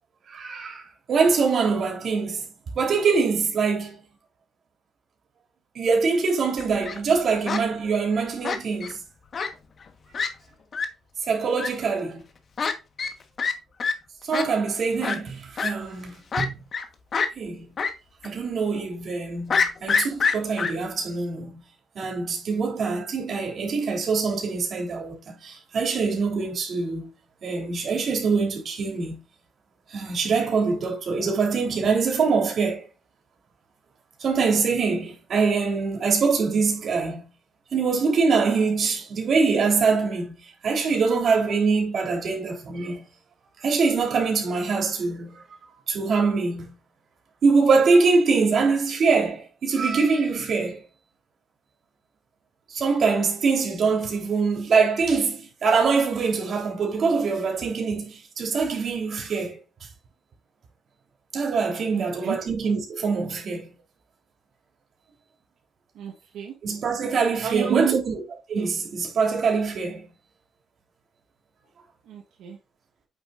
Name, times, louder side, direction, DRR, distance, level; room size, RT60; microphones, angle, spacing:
voice 1, 0.3-0.8 1.1-4.0 5.8-9.0 11.3-12.2 14.2-16.6 17.4-17.7 18.2-21.5 22.0-27.1 27.4-29.2 29.9-32.8 34.2-37.3 37.7-40.4 40.6-43.0 43.6-45.4 45.9-46.7 47.4-50.8 52.7-59.6 61.3-63.7 66.6-68.2 68.5-70.1, right 4 dB, 55° right, 3.4 m, -24 dB
Fowl, 6.6-7.0 7.5-7.6 8.4-8.9 9.3-9.5 9.8-9.9 10.1-10.3 10.7-10.9 11.6-11.7 12.6-12.7 13.0-13.1 13.4-13.5 13.8-13.9 14.3-14.4 15.0-15.2 15.6-15.7 16.3-16.8 17.1-17.3 17.8-17.9 18.2-18.3 19.5-20.7, left 5 dB, 45° left, 1.2 m, -25 dB
voice 2, 61.9-62.4 66.0-66.5 67.4-68.0 72.1-72.6, right 10 dB, 80° right, 1.2 m, -30 dB
8.8 x 6.6 x 2.5 m
cardioid pair, 105°, 0 cm